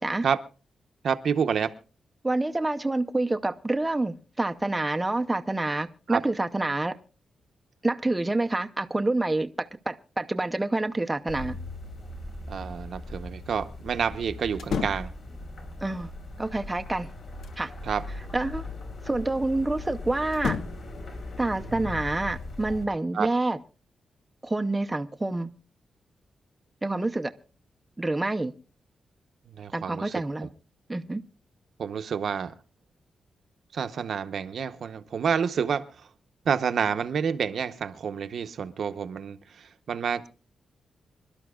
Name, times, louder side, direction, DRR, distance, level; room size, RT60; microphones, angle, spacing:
voice 1, 1.0-1.7 6.1-6.2 12.5-15.1 17.8-18.0 23.1-23.3 29.5-30.5 31.8-32.5 33.7-36.1 36.4-40.3, right 7 dB, 60° right, 0.8 m, -29 dB
voice 2, 2.2-6.9 7.8-11.6 15.8-16.1 16.4-17.1 17.6-17.7 18.3-18.7 19.0-20.6 21.4-23.6 24.4-25.5 26.8-27.3 28.0-28.5 29.7-30.5 30.9-31.2, right 2 dB, 10° right, 0.6 m, -27 dB
sound 1, 11.3-22.9, left 2 dB, 60° left, 4.7 m, -39 dB
sound 2, 14.6-15.2 16.8-17.7 20.3-20.9, left 6 dB, 85° left, 1.1 m, -32 dB
26.0 x 12.0 x 2.3 m
wide cardioid pair, 155°, 0 cm